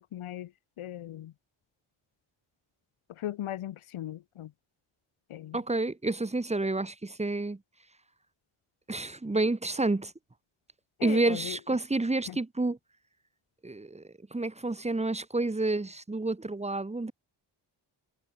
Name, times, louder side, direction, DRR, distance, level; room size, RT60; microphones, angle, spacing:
voice 1, 0.1-0.5 0.8-1.3 3.1-4.5 5.3-5.6 11.0-11.6 12.3-12.4, left 12 dB, 85° left, 1.1 m, -38 dB
voice 2, 5.5-7.6 8.9-10.1 11.0-12.8 13.6-14.0 14.3-17.1, right 2 dB, 15° right, 1.0 m, -29 dB
cardioid pair, 50°, 49 cm